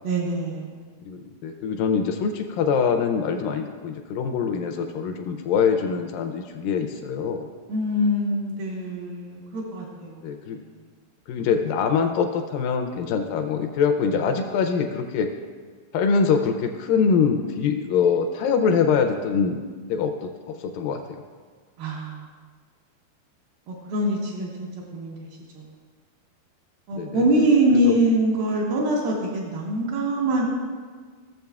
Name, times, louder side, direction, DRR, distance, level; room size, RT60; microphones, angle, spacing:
voice 1, 0.0-0.8 7.7-10.1 21.8-22.2 23.7-25.1 25.5-25.6 26.9-30.4, right 1 dB, 75° right, -5 dB, 2.8 m, -24 dB
voice 2, 1.0-7.5 10.2-10.6 11.3-15.3 15.9-19.6 19.9-20.3 20.7-21.2 26.9-27.5 27.9-28.0, left 6 dB, 80° left, 6 dB, 2.1 m, -24 dB
16.0 x 7.4 x 2.3 m, 1.6 s
omnidirectional pair, 4.3 m